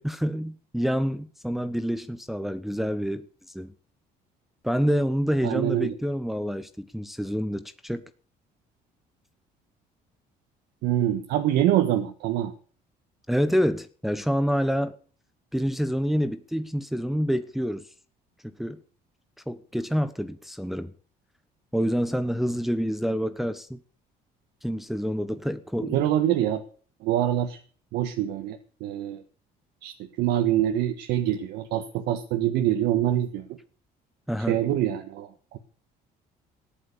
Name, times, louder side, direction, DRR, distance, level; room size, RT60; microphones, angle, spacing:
voice 1, 0.0-3.2 3.5-3.7 4.6-8.0 13.3-15.0 15.5-17.9 18.4-18.8 19.5-20.9 21.7-23.8 24.6-26.1 34.3-34.6, equal, ahead, 1.0 m, -27 dB
voice 2, 5.4-5.9 10.8-12.5 25.9-26.6 27.0-27.6 27.9-29.2 29.8-33.4 34.5-35.6, right 12 dB, 90° right, 1.5 m, -25 dB
15.0 x 11.0 x 6.9 m
cardioid pair, 110°, 17 cm